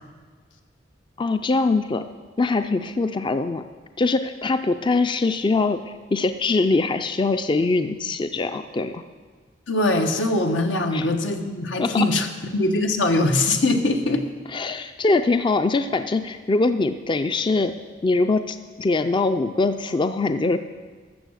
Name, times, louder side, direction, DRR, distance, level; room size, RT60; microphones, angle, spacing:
voice 1, 1.2-2.0 2.4-3.6 4.0-5.8 6.1-9.0 10.9-11.1 11.8-12.1 14.5-17.7 18.0-20.6, left 3 dB, 25° left, 9 dB, 0.4 m, -22 dB
voice 2, 9.7-12.3 12.5-14.3, left 2 dB, 90° left, 5 dB, 1.2 m, -22 dB
13.0 x 7.3 x 6.4 m, 1.5 s
head